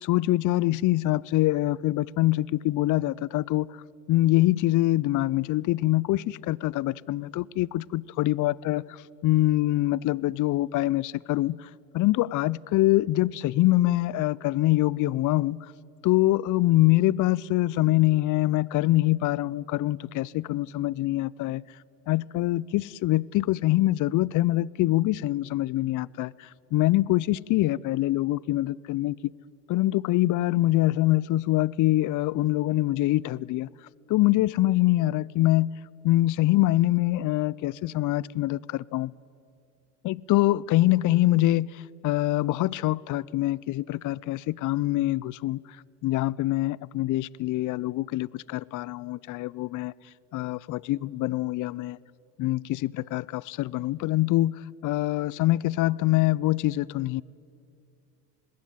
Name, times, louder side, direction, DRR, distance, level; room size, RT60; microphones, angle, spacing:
voice 1, 0.0-3.7 4.1-9.0 9.2-11.7 11.9-15.6 16.0-21.6 22.1-29.3 29.7-33.7 34.1-35.7 36.0-39.1 40.0-45.6 46.0-49.9 50.3-52.0 52.4-54.5 54.8-57.2, left 16 dB, 40° left, 0.6 m, -24 dB
27.0 x 20.0 x 9.4 m
hypercardioid pair, 80°, 49 cm